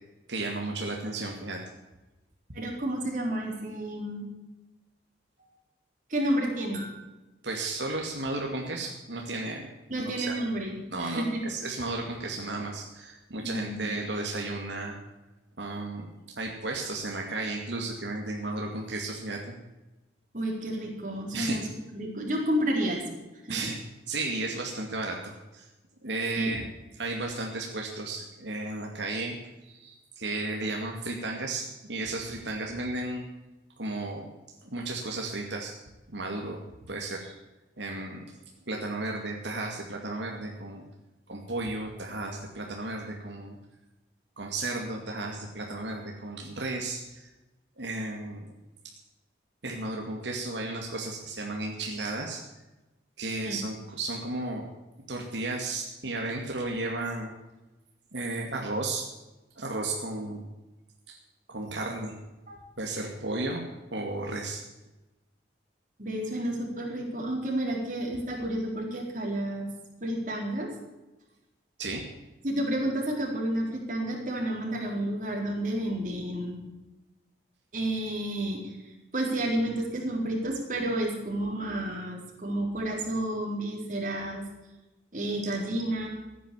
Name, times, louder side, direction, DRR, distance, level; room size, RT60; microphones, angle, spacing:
voice 1, 0.3-1.6 7.4-9.6 10.0-10.4 10.9-15.0 15.6-16.1 16.4-19.6 21.3-21.6 23.5-23.8 24.1-25.7 26.0-26.6 26.9-29.3 29.6-33.2 33.8-34.3 34.6-35.7 36.1-36.6 36.9-37.3 37.8-38.3 38.7-40.8 41.3-43.6 44.4-47.3 47.8-48.5 49.6-52.4 53.2-54.7 55.1-57.3 58.1-59.0 59.6-60.5 61.1-61.2 61.5-62.1 62.8-63.6 63.9-64.6 71.8-72.0, right 2 dB, 80° right, 0 dB, 2.4 m, -34 dB
voice 2, 2.5-4.3 6.1-7.0 9.9-11.4 13.4-13.9 20.3-21.6 21.9-23.0 26.4-26.6 53.4-53.6 62.5-62.6 66.0-69.7 70.0-70.7 72.4-76.6 77.7-78.8 79.1-84.4 85.1-86.1, right 1 dB, 45° right, 0 dB, 4.3 m, -30 dB
15.5 x 10.0 x 7.1 m, 1.0 s
head